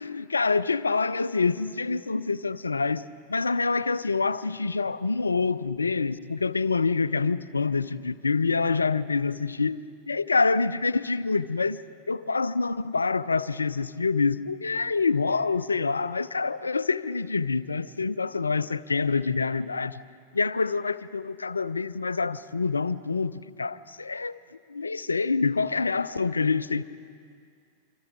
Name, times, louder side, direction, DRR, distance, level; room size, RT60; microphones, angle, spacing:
voice 1, 0.0-9.8 10.1-11.8 12.1-20.0 20.3-24.4 24.7-26.8, left 4 dB, 75° left, 0.6 m, -26 dB
27.0 x 25.5 x 4.8 m
figure-of-eight pair, 90°, 0 cm